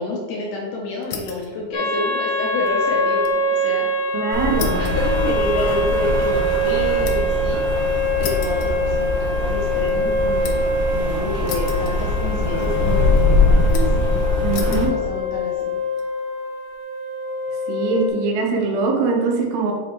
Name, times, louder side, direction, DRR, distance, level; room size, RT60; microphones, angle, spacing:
voice 1, 0.0-3.9 4.8-10.6 10.9-15.7, left 2 dB, 70° left, -3 dB, 2.1 m, -29 dB
sound 1, 1.0-1.5 1.9-3.4 3.7-3.8 4.6-7.4 8.2-9.3 9.7-10.8 11.5-12.4 12.6-13.2 13.7-14.1 14.5-14.9 15.6-16.0, left 7 dB, 85° left, 2.8 m, -36 dB
sound 2, 1.7-18.1, left 1 dB, 45° left, 1.4 m, -24 dB
voice 2, 4.1-4.8 14.4-14.9 17.7-19.7, right 4 dB, 85° right, 1 dB, 3.0 m, -22 dB
Rain, 4.3-14.9, left 2 dB, 45° right, 0.7 m, -22 dB
7.5 x 5.3 x 3.1 m, 1.5 s
omnidirectional pair, 4.5 m